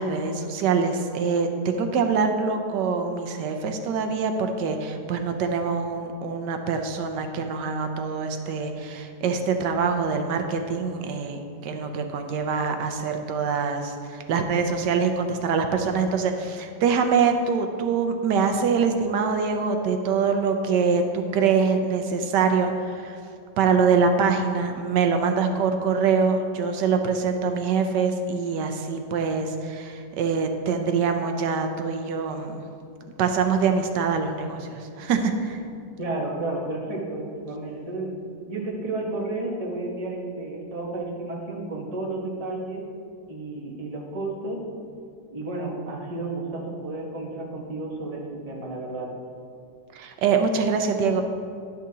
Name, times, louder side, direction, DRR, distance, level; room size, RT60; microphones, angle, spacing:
voice 1, 0.0-23.2 23.6-32.6 33.2-35.6 49.9-51.2, right 5 dB, 85° right, 5 dB, 1.3 m, -24 dB
voice 2, 36.0-38.1 38.5-42.8 43.3-44.7 45.3-49.1, right 2 dB, 25° right, -2 dB, 1.0 m, -32 dB
11.5 x 6.3 x 2.8 m, 2.5 s
omnidirectional pair, 1.8 m